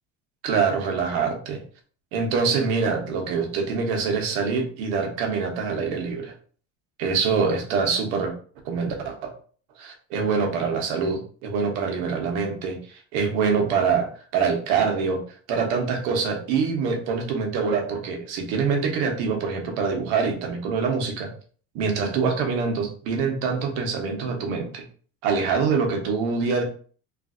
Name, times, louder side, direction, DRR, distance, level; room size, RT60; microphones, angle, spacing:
voice 1, 0.4-1.6 2.1-6.3 7.0-8.3 8.6-9.3 9.8-15.2 15.5-21.3 21.7-24.8 25.2-26.6, right 5 dB, 80° right, 2 dB, 1.0 m, -25 dB
3.2 x 2.5 x 2.5 m, 0.43 s
cardioid pair, 160°, 34 cm